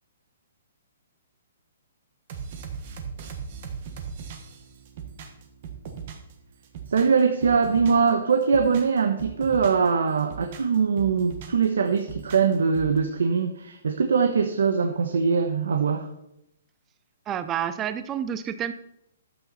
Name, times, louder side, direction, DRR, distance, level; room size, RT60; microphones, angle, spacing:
sound 1, 2.3-6.3 6.6-8.1 8.4-9.9 10.2-11.6 12.0-13.0, right 6 dB, 30° right, 1.3 m, -38 dB
voice 1, 6.9-16.1, right 5 dB, 85° right, 5 dB, 1.1 m, -22 dB
voice 2, 17.3-18.7, right 9 dB, 10° right, 11 dB, 0.4 m, -29 dB
12.0 x 8.2 x 4.2 m, 0.80 s
hypercardioid pair, 180°, 0 cm